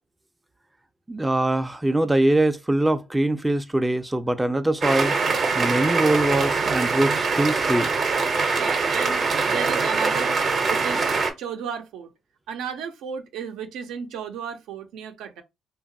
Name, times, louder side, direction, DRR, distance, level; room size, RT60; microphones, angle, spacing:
voice 1, 1.1-5.2 5.5-7.9, right 1 dB, 10° right, 0.3 m, -22 dB
sound 1, 4.8-11.3, right 4 dB, 50° right, 0.6 m, -23 dB
voice 2, 8.6-10.4 10.7-11.1 11.4-12.1 12.5-15.4, right 7 dB, 90° right, 0.5 m, -34 dB
2.8 x 2.3 x 2.6 m
cardioid pair, 90°, 0 cm